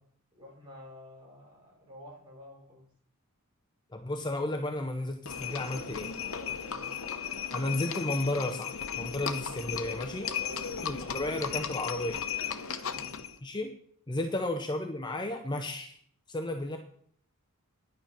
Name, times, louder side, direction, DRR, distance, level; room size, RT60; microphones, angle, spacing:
voice 1, 0.4-2.9 6.3-7.0 10.2-10.7 12.8-13.1 14.3-14.4, left 1 dB, 20° right, -4 dB, 5.0 m, -50 dB
voice 2, 3.9-6.1 7.5-10.3 10.8-12.2 13.4-13.7 14.1-16.0 16.3-16.8, left 1 dB, 20° left, 4 dB, 0.8 m, -33 dB
Livestock farm animals working animals, 5.2-13.4, left 7 dB, 65° left, 0.9 m, -36 dB
10.0 x 9.8 x 5.9 m, 0.64 s
head